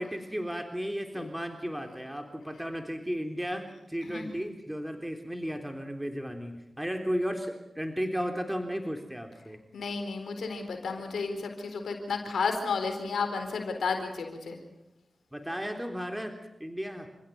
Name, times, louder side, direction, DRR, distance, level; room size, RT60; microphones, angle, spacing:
voice 1, 0.0-9.6 15.3-17.1, equal, 10° right, 5 dB, 3.6 m, -34 dB
voice 2, 9.7-14.6, left 4 dB, 90° left, 6 dB, 4.1 m, -32 dB
29.5 x 16.0 x 9.4 m, 0.90 s
cardioid pair, 40°, 0 cm